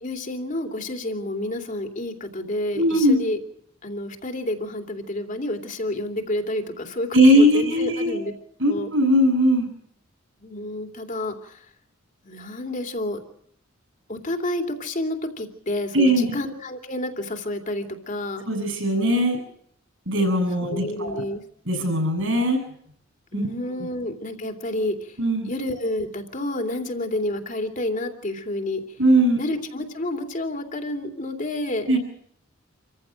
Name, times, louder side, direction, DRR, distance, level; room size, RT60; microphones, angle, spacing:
voice 1, 0.0-3.4 3.8-8.3 8.7-8.9 10.4-11.6 12.2-13.2 14.1-18.4 20.7-21.4 23.3-25.1 25.5-28.8 29.4-31.9, left 1 dB, 40° left, 4 dB, 2.9 m, -29 dB
voice 2, 2.7-3.2 7.1-8.2 8.6-9.7 15.9-16.2 18.5-19.4 20.1-21.2 21.7-22.6 23.3-23.5 23.8-23.9 25.2-25.5 29.0-29.4 31.9-32.0, equal, 65° right, 6 dB, 7.9 m, -19 dB
27.5 x 15.0 x 7.7 m, 0.67 s
head